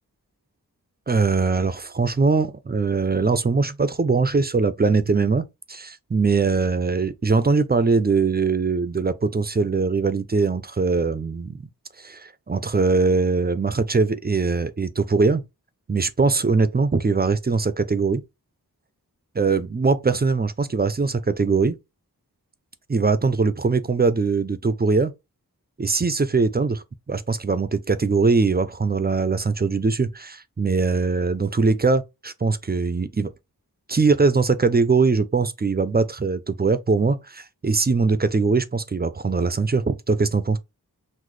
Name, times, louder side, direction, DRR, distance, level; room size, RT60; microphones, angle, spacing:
voice 1, 1.1-11.6 12.0-15.4 15.9-18.2 19.4-21.8 22.9-25.1 25.8-33.3 33.9-40.6, right 4 dB, 25° right, 0.4 m, -21 dB
3.9 x 2.1 x 3.1 m
wide cardioid pair, 45°, 38 cm